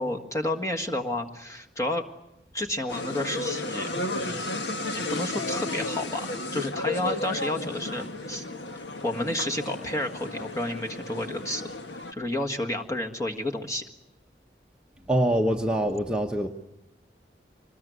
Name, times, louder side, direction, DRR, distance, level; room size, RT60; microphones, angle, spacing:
voice 1, 0.0-2.1 2.5-6.3 6.5-8.4 9.0-13.9, left 1 dB, 20° left, 3 dB, 1.7 m, -31 dB
sound 1, 2.9-12.1, left 2 dB, 85° left, 1.5 m, -33 dB
voice 2, 15.1-16.5, right 1 dB, 5° right, 1 dB, 1.0 m, -24 dB
25.5 x 20.5 x 9.4 m, 0.87 s
head